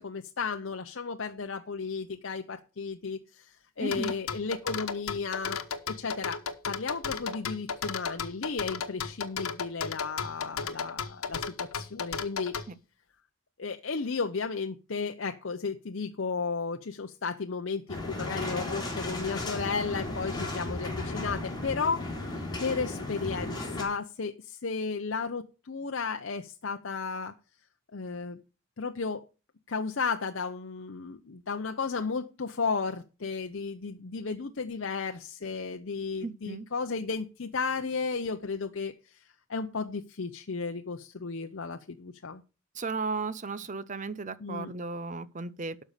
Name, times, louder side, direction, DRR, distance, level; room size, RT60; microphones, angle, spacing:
voice 1, 0.0-5.6 5.9-6.4 6.7-12.5 13.6-22.0 22.6-27.3 27.9-28.4 28.8-29.2 29.7-39.2 39.5-42.4 44.4-44.7, left 4 dB, 60° left, 0.7 m, -34 dB
voice 2, 3.8-4.1 12.7-12.8 36.2-36.7 42.8-45.8, right 3 dB, 35° right, 0.6 m, -35 dB
sound 1, 3.9-12.7, left 6 dB, 85° left, 1.1 m, -34 dB
sound 2, 17.9-23.8, left 2 dB, 20° left, 3.4 m, -35 dB
12.5 x 5.4 x 6.6 m
head